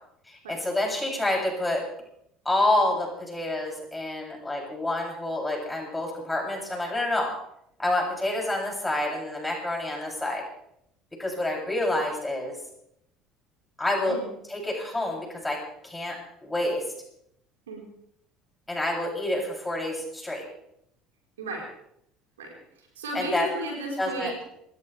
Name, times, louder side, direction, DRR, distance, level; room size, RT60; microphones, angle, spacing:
voice 1, 0.3-1.8 2.4-7.3 7.8-10.4 11.2-12.5 13.8-14.2 14.5-15.6 15.8-16.2 16.4-16.8 18.7-20.4 23.1-23.5 24.0-24.5, left 1 dB, 10° left, -1 dB, 7.7 m, -28 dB
voice 2, 22.4-24.5, right 2 dB, 80° right, 0 dB, 4.7 m, -34 dB
28.5 x 14.5 x 3.5 m, 0.73 s
figure-of-eight pair, 60°, 0 cm